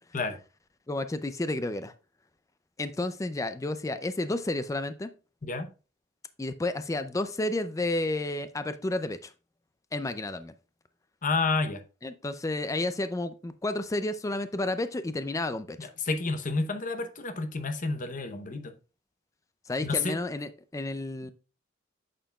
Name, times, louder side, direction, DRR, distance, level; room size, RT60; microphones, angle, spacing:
voice 1, 0.9-1.9 2.8-5.1 6.4-9.3 9.9-10.5 12.0-15.9 19.7-21.3, left 2 dB, 15° left, 0.4 m, -31 dB
voice 2, 11.2-11.8 15.8-18.7 19.8-20.1, left 3 dB, 40° left, 0.8 m, -30 dB
8.9 x 6.7 x 2.3 m
head